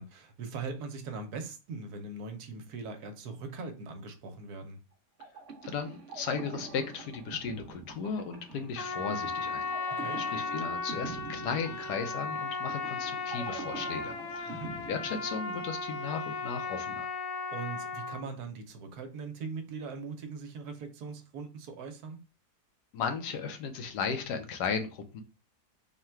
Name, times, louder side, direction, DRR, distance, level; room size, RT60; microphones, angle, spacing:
voice 1, 0.0-4.8 9.9-10.2 14.5-14.7 17.5-22.2, right 4 dB, 70° right, 1.2 m, -40 dB
sound 1, 5.2-15.9, right 3 dB, 55° right, 0.9 m, -46 dB
voice 2, 5.6-14.6 14.9-17.1 22.9-25.2, left 5 dB, 85° left, 1.3 m, -36 dB
Trumpet, 8.7-18.2, left 4 dB, 60° left, 0.8 m, -36 dB
3.7 x 2.2 x 4.4 m
omnidirectional pair, 1.7 m